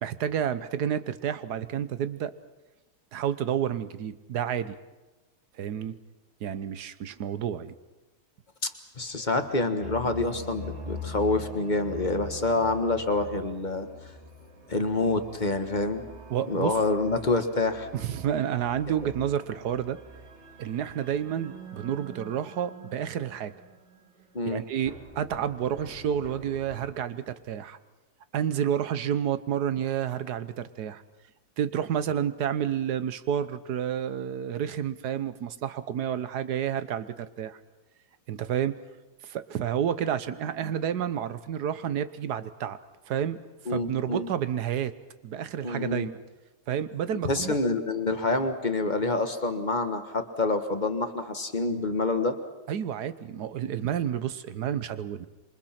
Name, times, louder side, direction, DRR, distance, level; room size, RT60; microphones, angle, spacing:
voice 1, 0.0-2.3 3.1-4.8 5.6-6.0 6.4-7.7 16.3-16.8 17.9-20.0 20.6-23.5 24.5-27.8 28.3-31.0 31.6-37.6 38.3-38.7 39.2-42.8 43.1-43.4 43.7-44.9 45.2-46.1 46.7-47.5 52.7-55.3, right 9 dB, 70° right, 13 dB, 1.5 m, -30 dB
voice 2, 9.0-13.9 14.7-16.0 16.5-17.9 24.3-24.6 43.7-44.3 45.6-46.1 47.2-52.4, left 3 dB, 30° left, 7 dB, 1.5 m, -27 dB
sound 1, 9.8-24.6 24.9-26.9, left 1 dB, 40° right, 2.8 m, -43 dB
27.0 x 24.0 x 5.9 m, 1.1 s
omnidirectional pair, 1.8 m